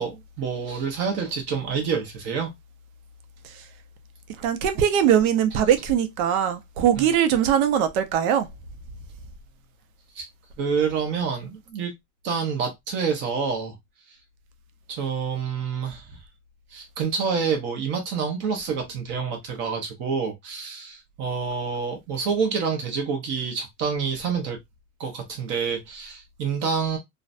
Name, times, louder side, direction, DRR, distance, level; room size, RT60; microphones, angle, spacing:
voice 1, 0.0-2.5 7.0-7.1 10.1-10.3 10.6-11.9 12.2-13.8 14.9-16.1 16.7-24.6 25.0-27.0, right 6 dB, 25° right, 0.5 m, -27 dB
voice 2, 4.4-8.5, right 9 dB, 70° right, 0.6 m, -21 dB
2.5 x 2.1 x 2.4 m
supercardioid pair, 170°, 44 cm